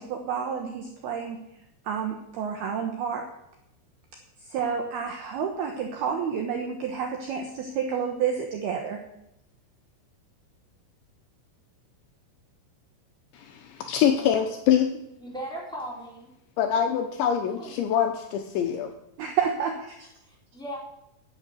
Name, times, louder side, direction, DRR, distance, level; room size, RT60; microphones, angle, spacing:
voice 1, 0.0-1.4 1.9-3.2 4.5-9.0 19.2-20.1, right 7 dB, 75° right, 3 dB, 2.4 m, -29 dB
voice 2, 13.3-14.9 16.6-18.9, left 9 dB, 75° left, 5 dB, 2.9 m, -24 dB
voice 3, 15.2-16.3 17.6-17.8 20.2-20.8, right 1 dB, ahead, -4 dB, 3.2 m, -37 dB
10.5 x 8.4 x 8.2 m, 0.82 s
omnidirectional pair, 5.9 m